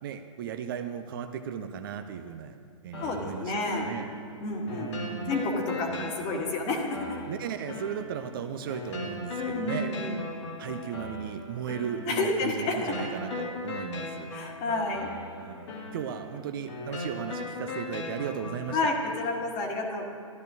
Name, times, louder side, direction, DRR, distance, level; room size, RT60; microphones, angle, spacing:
voice 1, 0.0-2.6 2.8-4.1 4.7-5.4 5.9-6.5 7.3-10.0 10.6-14.3 15.4-18.9, right 8 dB, 40° right, 8 dB, 0.5 m, -36 dB
sound 1, 2.9-18.9, left 2 dB, 55° left, 1.7 m, -39 dB
voice 2, 3.0-3.9 4.4-4.9 5.3-7.2 9.4-10.2 12.1-12.9 14.3-15.1 18.7-20.1, left 2 dB, 30° left, 1 dB, 1.5 m, -30 dB
12.5 x 11.5 x 2.7 m, 2.3 s
figure-of-eight pair, 120°, 17 cm